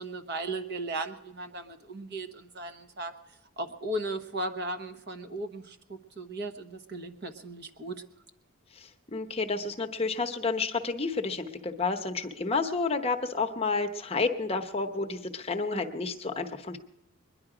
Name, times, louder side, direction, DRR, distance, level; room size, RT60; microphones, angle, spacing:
voice 1, 0.0-3.1 3.6-8.0, right 2 dB, 50° right, 8 dB, 1.2 m, -36 dB
voice 2, 8.7-16.8, left 4 dB, 25° left, 4 dB, 0.9 m, -30 dB
22.0 x 10.5 x 4.9 m, 0.93 s
head